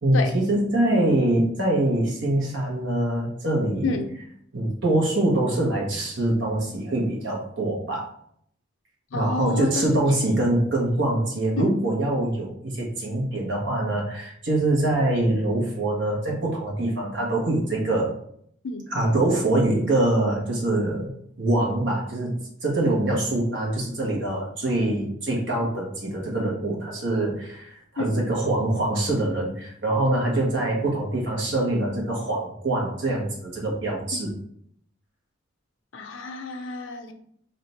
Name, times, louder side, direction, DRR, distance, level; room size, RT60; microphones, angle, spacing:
voice 1, 0.0-3.9 4.5-8.1 9.1-18.2 18.9-21.1 21.4-22.3 22.6-34.3, right 1 dB, 65° right, -2 dB, 1.3 m, -24 dB
voice 2, 9.1-9.8 11.6-11.7 18.6-18.8 28.0-28.2 34.2-34.3 35.9-37.1, left 3 dB, 80° left, 6 dB, 0.5 m, -29 dB
3.3 x 2.8 x 4.2 m, 0.67 s
head